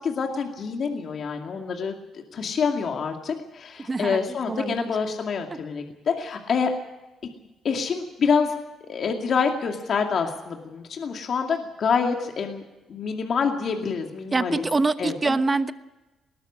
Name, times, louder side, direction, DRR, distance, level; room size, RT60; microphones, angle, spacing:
voice 1, 0.0-6.7 7.6-8.5 8.9-12.6 12.9-14.7 15.0-15.3, left 5 dB, 55° left, 3 dB, 2.4 m, -26 dB
voice 2, 3.9-4.9 14.3-15.7, right 3 dB, 25° right, 11 dB, 1.1 m, -25 dB
20.0 x 13.5 x 10.0 m, 1.1 s
cardioid pair, 90°, 0 cm